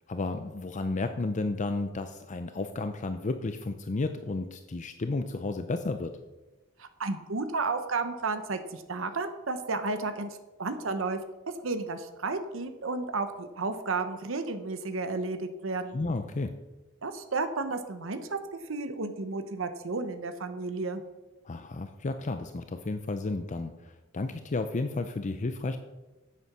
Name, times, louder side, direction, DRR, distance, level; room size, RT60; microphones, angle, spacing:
voice 1, 0.1-6.2 15.9-16.5 21.4-25.8, left 3 dB, 35° left, 8 dB, 0.5 m, -32 dB
voice 2, 6.8-11.2 11.6-16.0 17.0-18.4 18.7-21.0, right 3 dB, 70° right, 9 dB, 0.9 m, -32 dB
9.6 x 8.4 x 6.1 m, 1.1 s
head